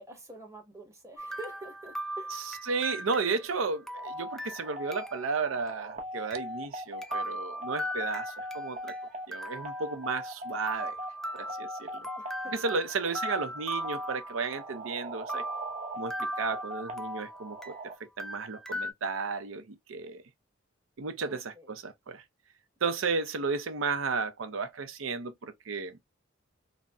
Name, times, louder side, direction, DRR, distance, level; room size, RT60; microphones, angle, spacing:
voice 1, 0.0-2.5 12.2-12.5 21.2-21.7, right 2 dB, 15° right, 1.0 m, -47 dB
sound 1, 1.2-5.4 5.7-5.8 6.3-6.4 7.0-9.0 9.3-10.4 10.7-14.9 15.3-17.8 18.2-18.9, equal, ahead, 0.3 m, -39 dB
voice 2, 2.7-8.9 9.3-11.0 11.3-12.1 12.5-15.5 16.0-17.7 18.0-20.2 21.0-22.2 22.8-26.0, right 4 dB, 75° right, 0.6 m, -33 dB
sound 2, 4.0-17.9, equal, 35° right, 0.8 m, -40 dB
4.0 x 2.0 x 2.3 m
head